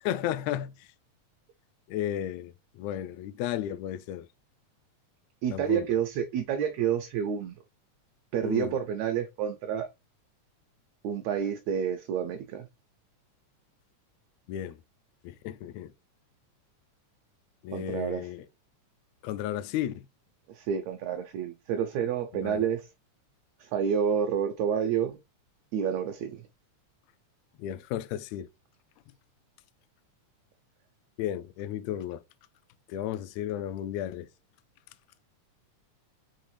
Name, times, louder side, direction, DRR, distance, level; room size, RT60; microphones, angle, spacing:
voice 1, 0.0-0.7 1.9-2.5 2.8-4.3 5.5-5.9 8.4-8.7 14.5-14.8 15.2-15.9 17.6-18.4 19.2-20.0 22.4-22.6 27.6-28.5 31.2-32.2 32.9-34.3, left 11 dB, 80° left, 1.6 m, -33 dB
voice 2, 5.4-7.6 8.3-9.9 11.0-12.7 17.7-18.3 20.5-22.9 23.6-25.2 25.7-26.5, right 8 dB, 75° right, 1.7 m, -29 dB
5.4 x 2.9 x 3.2 m
omnidirectional pair, 3.5 m